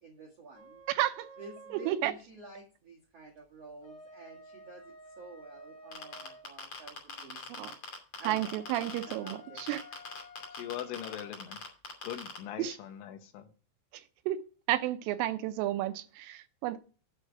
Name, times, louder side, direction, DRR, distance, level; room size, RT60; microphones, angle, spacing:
voice 1, 0.0-0.8 1.4-7.7 8.1-8.5 9.0-9.6 10.6-10.7, right 3 dB, 65° right, 1.6 m, -50 dB
sound 1, 0.5-2.0 3.6-6.5 8.3-11.4, left 1 dB, 15° left, 2.9 m, -52 dB
voice 2, 0.9-1.2 1.9-2.1 7.6-7.7 8.3-9.8 12.6-12.7 14.3-14.4 14.7-16.8, right 14 dB, 80° right, 3.2 m, -31 dB
sound 2, 5.9-9.3 9.6-12.4, left 5 dB, 35° left, 2.9 m, -41 dB
voice 3, 10.5-11.6 12.0-13.5, left 11 dB, 75° left, 3.3 m, -41 dB
9.1 x 8.1 x 4.7 m
omnidirectional pair, 5.9 m